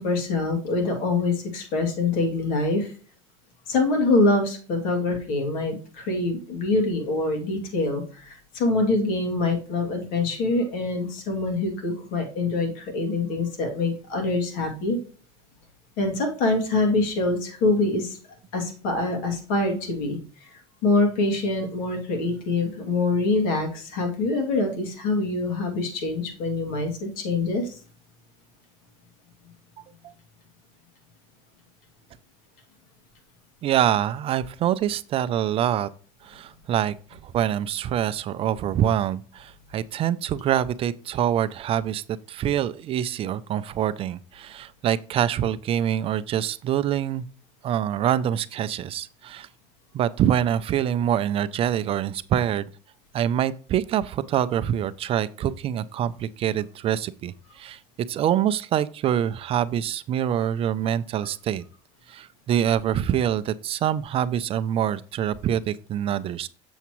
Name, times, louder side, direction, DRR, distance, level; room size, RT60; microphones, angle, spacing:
voice 1, 0.0-2.9 3.7-15.0 16.0-18.2 18.5-27.8, left 2 dB, 65° left, 2.6 m, -25 dB
voice 2, 33.6-35.9 36.2-36.9 37.2-47.3 47.6-49.5 49.9-52.7 53.1-57.8 58.1-61.6 62.1-66.5, right 10 dB, 40° right, 0.4 m, -25 dB
7.2 x 6.8 x 3.0 m
supercardioid pair, 120°, 15 cm